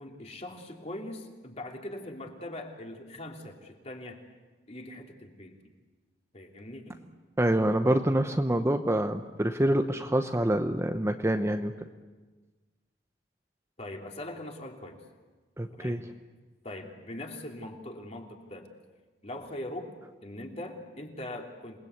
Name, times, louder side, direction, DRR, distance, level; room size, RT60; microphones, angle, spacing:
voice 1, 0.0-4.2 4.7-5.6 6.3-7.0 13.8-15.0 15.7-16.1 16.6-18.7 19.2-19.9 20.2-21.8, left 1 dB, 35° left, 1 dB, 3.1 m, -41 dB
voice 2, 7.4-11.9 15.6-16.0, right 1 dB, 15° right, 6 dB, 0.9 m, -26 dB
28.0 x 20.5 x 8.2 m, 1.3 s
head